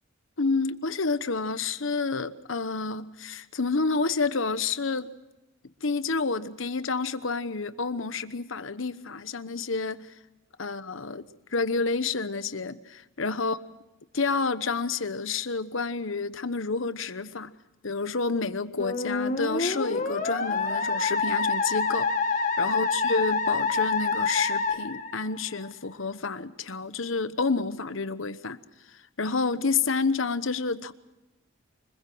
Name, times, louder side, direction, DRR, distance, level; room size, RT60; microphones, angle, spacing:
voice 1, 0.4-5.1 5.8-10.1 10.6-13.6 14.1-17.5 17.8-22.1 22.6-28.6 29.2-30.9, left 4 dB, 75° left, 1.1 m, -29 dB
Musical instrument, 18.8-25.7, left 4 dB, 40° left, 1.9 m, -27 dB
25.0 x 21.0 x 6.2 m
head